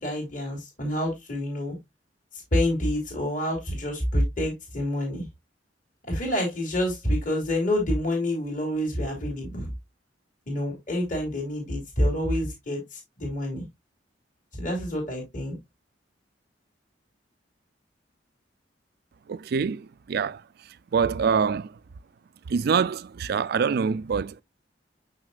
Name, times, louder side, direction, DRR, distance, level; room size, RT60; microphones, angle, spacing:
voice 1, 0.0-1.8 2.5-5.3 6.1-9.7 10.5-13.6 14.6-15.6, left 1 dB, 45° left, 2.8 m, -27 dB
voice 2, 19.3-20.4 20.9-21.7 22.5-24.4, right 6 dB, 55° right, 0.4 m, -25 dB
6.7 x 6.1 x 2.3 m
head